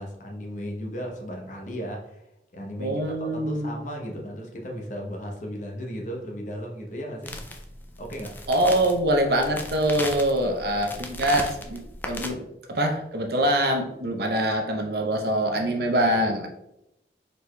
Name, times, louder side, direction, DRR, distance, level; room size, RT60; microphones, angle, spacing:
voice 1, 0.0-2.2 2.5-7.4 8.0-8.3 10.4-10.7 11.0-11.1, equal, 45° left, 1 dB, 0.8 m, -35 dB
voice 2, 2.8-3.8 8.5-12.4 12.7-16.5, right 1 dB, 60° right, 3 dB, 0.6 m, -24 dB
sound 1, 7.2-12.3, left 2 dB, 10° left, 0.3 m, -37 dB
4.6 x 4.0 x 2.2 m, 0.86 s
head